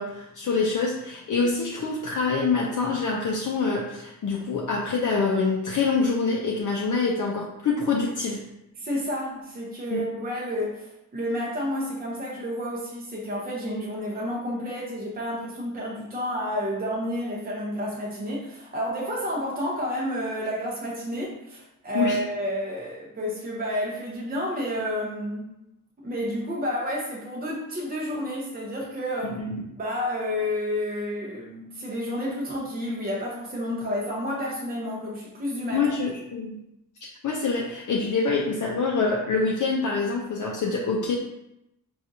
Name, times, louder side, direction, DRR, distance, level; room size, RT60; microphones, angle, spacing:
voice 1, 0.0-8.5 9.9-10.0 21.9-22.2 29.2-29.6 35.7-36.6 37.2-41.2, left 4 dB, 65° left, -2 dB, 0.5 m, -25 dB
voice 2, 8.8-25.5 26.0-29.4 29.8-35.9, equal, 25° right, -4 dB, 0.6 m, -30 dB
4.2 x 2.3 x 2.6 m, 0.86 s
wide cardioid pair, 105°, 34 cm